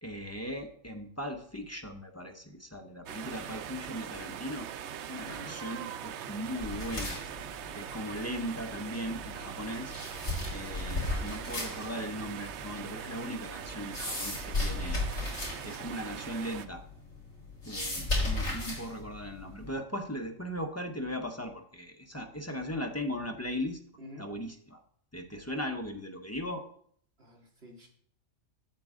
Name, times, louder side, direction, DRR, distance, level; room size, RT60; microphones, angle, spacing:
voice 1, 0.0-4.7 5.0-7.2 7.8-9.9 10.5-15.0 15.6-16.8 17.7-23.8 24.2-24.8 25.1-26.6, equal, 20° left, 4 dB, 0.4 m, -38 dB
sound 1, 3.1-16.7, right 9 dB, 70° right, 0.8 m, -42 dB
voice 2, 5.2-5.6 10.7-11.1 18.5-18.6 24.0-24.3 27.2-27.9, left 1 dB, 50° right, 0 dB, 2.1 m, -49 dB
sound 2, 6.6-19.7, left 2 dB, 60° left, 4.2 m, -37 dB
8.4 x 7.3 x 3.6 m, 0.62 s
omnidirectional pair, 1.3 m